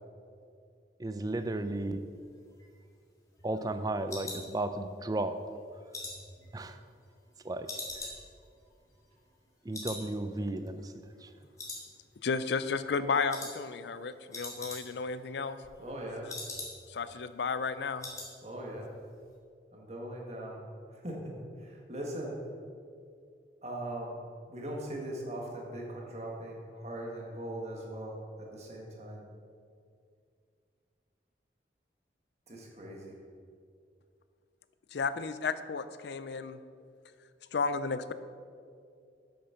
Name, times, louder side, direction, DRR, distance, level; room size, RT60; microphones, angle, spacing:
voice 1, 1.0-2.0 3.4-5.4 6.5-6.8 7.4-7.7 9.6-10.9 11.2-11.3, right 2 dB, 20° right, 9 dB, 0.4 m, -34 dB
sound 1, 2.4-5.1 5.5-7.3 7.7-9.5 9.7-10.1 10.3-10.4 10.9-11.3 11.6-12.4 12.6-12.9 13.3-13.6 13.9-14.0 14.2-15.1 15.4-17.0 17.3-17.4 17.7-18.3 18.6-18.9 19.2-19.3, left 2 dB, 20° left, 1.7 m, -43 dB
voice 2, 12.2-15.6 16.9-18.1 34.9-36.6 37.5-38.1, left 5 dB, 75° left, 13 dB, 0.4 m, -33 dB
voice 3, 15.8-16.3 18.4-18.9 19.7-20.6 20.9-22.4 23.6-24.2 24.5-29.2 32.5-33.2, right 1 dB, 35° right, -1 dB, 1.6 m, -40 dB
8.1 x 6.4 x 5.7 m, 2.3 s
head